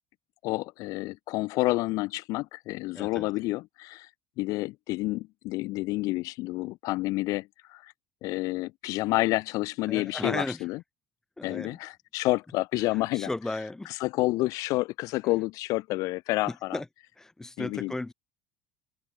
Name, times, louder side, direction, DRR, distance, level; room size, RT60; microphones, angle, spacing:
voice 1, 0.4-4.1 4.4-7.9 8.2-10.8 11.4-13.3 13.8-16.8 17.6-17.9, left 20 dB, 60° left, 1.5 m, -29 dB
voice 2, 2.9-3.3 9.9-10.6 11.4-11.8 12.9-13.9 16.5-16.9 17.2-18.1, left 2 dB, 10° left, 5.8 m, -35 dB
open air
cardioid pair, 150°, 7 cm